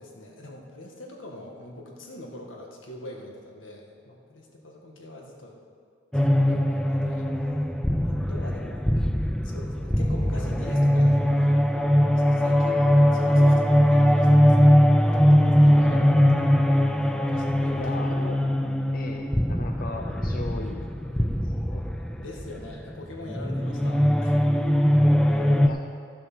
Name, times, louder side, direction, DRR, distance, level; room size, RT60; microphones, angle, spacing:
voice 1, 0.0-5.5 6.3-7.3 8.0-8.8 9.4-11.6 12.3-12.9 13.1-16.5 17.3-17.9 22.2-24.4, left 1 dB, 85° left, 0 dB, 1.7 m, -43 dB
sound 1, 6.1-25.7, equal, 5° left, 0.4 m, -21 dB
voice 2, 17.8-18.4 18.9-21.8 25.6-25.8, left 2 dB, 50° left, 3 dB, 0.6 m, -38 dB
12.0 x 7.5 x 6.1 m, 2.2 s
head